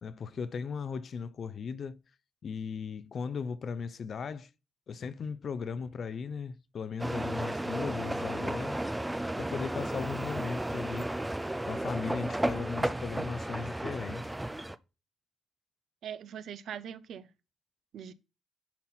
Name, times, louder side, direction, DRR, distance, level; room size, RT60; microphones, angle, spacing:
voice 1, 0.0-2.0 2.4-4.5 4.9-8.8 9.4-11.1 11.6-14.3, left 5 dB, 40° left, 0.5 m, -37 dB
sound 1, 7.0-14.8, right 1 dB, 5° right, 0.4 m, -33 dB
voice 2, 16.0-17.3 17.9-18.1, right 9 dB, 60° right, 0.7 m, -41 dB
10.5 x 4.3 x 5.7 m
cardioid pair, 170°, 0 cm